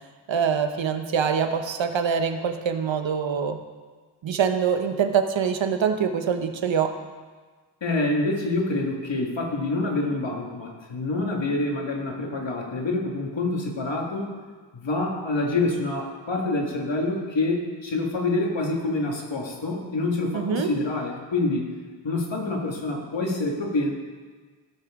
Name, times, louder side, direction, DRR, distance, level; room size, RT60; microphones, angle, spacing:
voice 1, 0.3-3.6 4.2-6.9 20.3-20.7, right 7 dB, 90° right, 7 dB, 0.9 m, -24 dB
voice 2, 7.8-14.3 14.7-21.7 22.0-23.9, left 2 dB, 80° left, 0 dB, 1.8 m, -26 dB
15.5 x 6.9 x 3.6 m, 1.4 s
wide cardioid pair, 75°, 44 cm